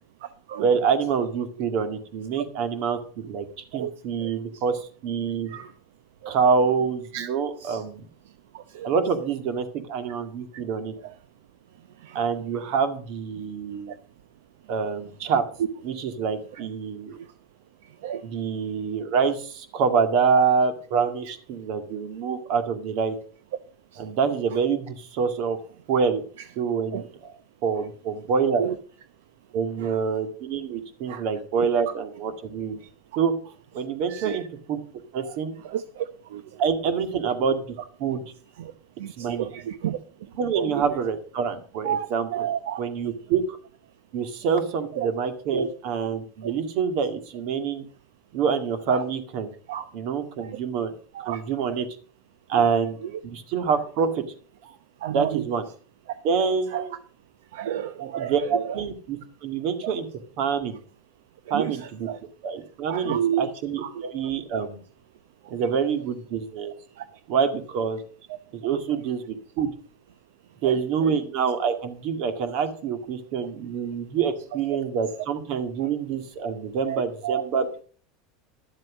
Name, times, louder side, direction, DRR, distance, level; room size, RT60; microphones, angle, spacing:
voice 1, 0.6-3.5 3.7-5.6 6.3-8.1 8.8-10.9 12.1-13.9 14.7-15.4 15.8-17.2 18.2-23.2 24.0-25.6 25.9-26.2 26.6-27.1 27.6-28.7 29.5-32.8 33.2-34.8 35.1-35.5 36.6-37.6 38.0-38.2 39.2-39.5 40.3-42.5 42.8-43.6 44.1-47.8 48.3-49.5 49.9-50.9 51.3-51.9 52.5-53.0 53.2-54.2 54.6-54.8 55.1-55.6 56.2-56.9 58.0-60.1 60.4-60.8 61.5-62.1 62.4-64.8 65.5-66.7 67.3-68.0 68.5-69.7 70.6-77.8, right 6 dB, 60° right, 8 dB, 2.1 m, -26 dB
voice 2, 8.5-8.9 10.5-10.6 12.0-12.2 13.9-14.0 18.0-18.2 23.9-24.0 26.9-27.0 28.6-28.7 31.1-31.2 34.1-34.4 35.2-35.3 35.6-36.6 38.6-38.7 39.0-40.0 40.5-40.8 41.8-42.8 45.0-45.1 45.5-45.7 46.4-46.5 48.9-49.0 49.7-49.8 50.4-50.5 51.1-51.4 51.7-51.8 55.0-55.5 56.7-56.9 57.5-58.7 59.8-59.9 61.5-61.8 62.1-62.2 62.9-63.5 63.9-64.0 67.0-67.1 70.6-70.8 76.9-77.4, right 10 dB, 80° right, 11 dB, 0.7 m, -30 dB
12.0 x 7.7 x 6.2 m, 0.43 s
supercardioid pair, 115°, 0 cm